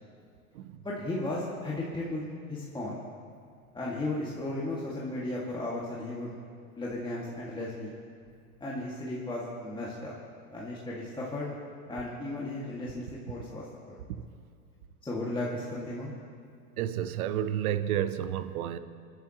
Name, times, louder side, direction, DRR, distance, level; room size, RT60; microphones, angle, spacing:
voice 1, 0.8-3.0 3.7-6.4 6.8-7.9 8.6-10.1 10.5-11.5 11.9-14.0 15.0-16.1, left 2 dB, 10° left, -6 dB, 2.1 m, -35 dB
voice 2, 16.8-18.8, right 10 dB, 75° right, 11 dB, 0.9 m, -30 dB
29.5 x 10.0 x 3.0 m, 2.3 s
hypercardioid pair, 105°, 43 cm